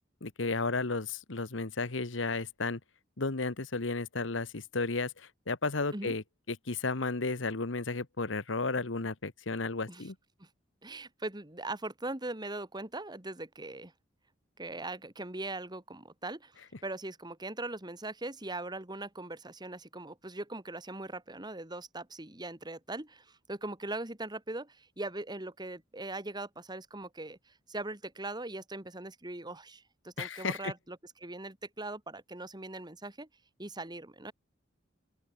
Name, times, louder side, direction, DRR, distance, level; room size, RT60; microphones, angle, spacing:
voice 1, 0.2-2.8 3.2-6.2 6.5-10.1 30.2-30.7, left 3 dB, 80° left, 1.4 m, -33 dB
voice 2, 10.8-13.9 14.6-33.3 33.6-34.3, right 2 dB, 20° right, 2.6 m, -40 dB
open air
head